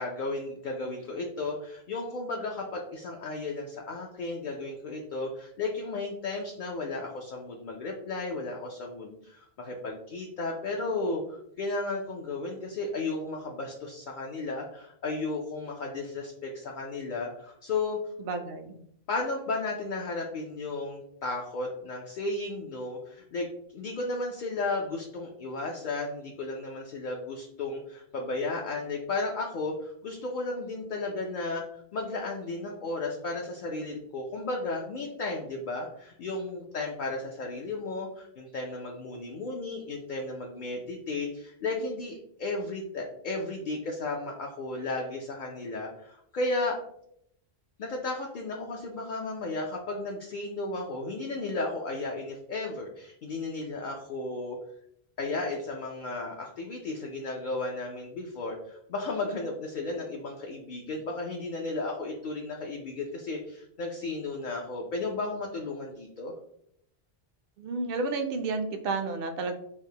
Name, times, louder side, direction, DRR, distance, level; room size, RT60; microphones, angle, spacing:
voice 1, 0.0-18.0 19.1-23.5 23.7-31.6 31.9-46.8 47.8-54.6 55.2-66.3, left 3 dB, 60° left, 0 dB, 0.6 m, -34 dB
voice 2, 18.2-18.7 67.6-69.5, right 3 dB, 65° right, 6 dB, 0.7 m, -31 dB
4.5 x 2.0 x 2.7 m, 0.72 s
omnidirectional pair, 1.0 m